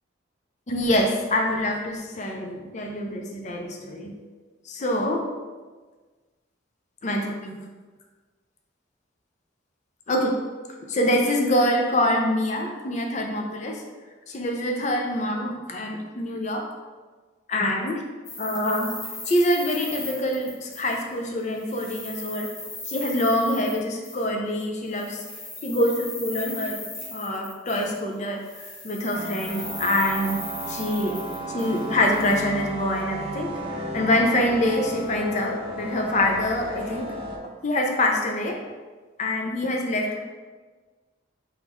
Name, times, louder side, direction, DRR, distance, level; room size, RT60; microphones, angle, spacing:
voice 1, 0.7-4.1 4.7-5.3 7.0-7.6 10.1-10.4 10.9-13.8 14.3-16.7 17.5-18.0 18.4-18.9 19.3-22.5 22.9-25.2 25.6-26.8 27.1-28.4 28.8-30.4 30.7-31.2 31.5-37.1 37.6-38.6 39.2-40.2, left 1 dB, 35° left, 2 dB, 0.5 m, -25 dB
sound 1, 18.2-21.2 21.5-24.3 24.9-28.1 28.4-32.3, left 2 dB, 75° left, 1.1 m, -38 dB
sound 2, 29.1-37.4, right 1 dB, 25° right, 0.6 m, -34 dB
4.7 x 3.1 x 3.6 m, 1.4 s
head